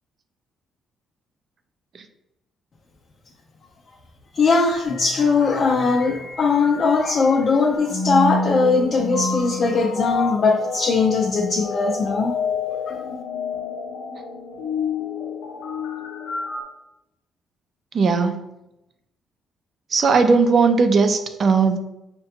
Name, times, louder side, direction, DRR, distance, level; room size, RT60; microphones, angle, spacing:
voice 1, 4.4-12.3, left 4 dB, 50° left, -1 dB, 0.5 m, -20 dB
sound 1, 4.8-16.6, left 4 dB, 85° left, 0.7 m, -29 dB
voice 2, 17.9-18.4 19.9-21.8, right 4 dB, 50° right, 7 dB, 0.5 m, -17 dB
5.6 x 2.2 x 2.8 m, 0.88 s
cardioid pair, 90°, 0 cm